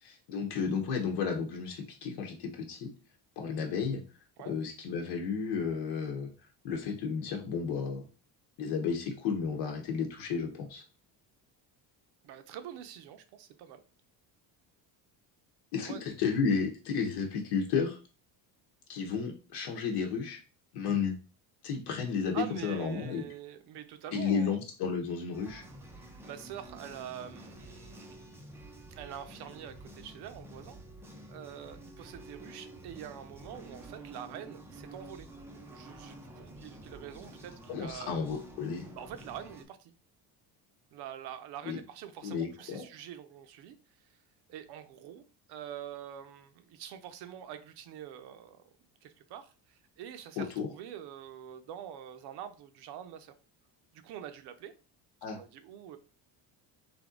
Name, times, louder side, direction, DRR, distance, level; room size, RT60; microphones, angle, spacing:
voice 1, 0.0-2.9 3.4-4.0 4.4-6.3 6.6-8.1 8.6-10.8 15.7-18.0 18.9-20.4 20.7-21.1 21.6-23.2 24.1-25.6 37.7-38.9 41.6-41.8 42.2-42.8 50.4-50.7 55.2-55.4, left 6 dB, 70° left, 2 dB, 1.0 m, -32 dB
voice 2, 12.2-13.8 15.8-16.0 22.3-24.6 26.0-28.1 29.0-30.8 31.3-35.3 35.7-38.2 39.0-39.9 40.9-43.8 44.5-45.2 45.5-48.6 49.0-53.3 53.9-54.7 55.3-56.0, right 10 dB, 65° right, 9 dB, 0.6 m, -45 dB
sound 1, 25.3-39.6, right 1 dB, 5° right, 0.4 m, -49 dB
3.5 x 2.7 x 3.7 m, 0.34 s
cardioid pair, 155°, 42 cm